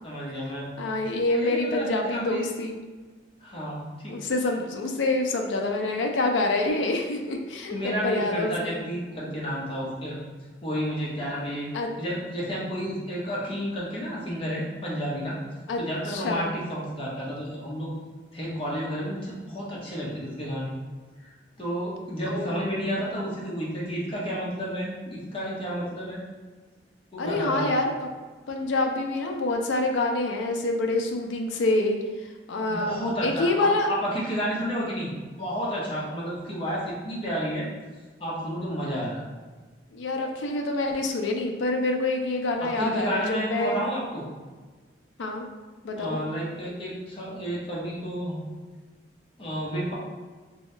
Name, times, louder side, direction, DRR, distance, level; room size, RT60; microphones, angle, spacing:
voice 1, 0.0-0.8 1.3-2.4 3.4-4.1 7.7-10.2 10.6-11.7 12.0-15.3 15.8-17.9 18.3-20.7 21.6-26.2 27.1-27.7 32.7-35.1 35.4-37.7 38.2-39.2 42.8-44.3 46.0-48.4 49.4-49.9, equal, 30° left, -6 dB, 0.9 m, -31 dB
voice 2, 0.8-2.8 4.1-8.8 11.7-11.9 15.7-15.8 16.1-16.5 22.3-22.6 27.2-28.1 28.5-32.0 32.5-33.9 39.9-43.8 45.2-45.4 45.8-46.2, left 2 dB, 85° left, 2 dB, 0.4 m, -26 dB
3.1 x 2.7 x 3.2 m, 1.3 s
head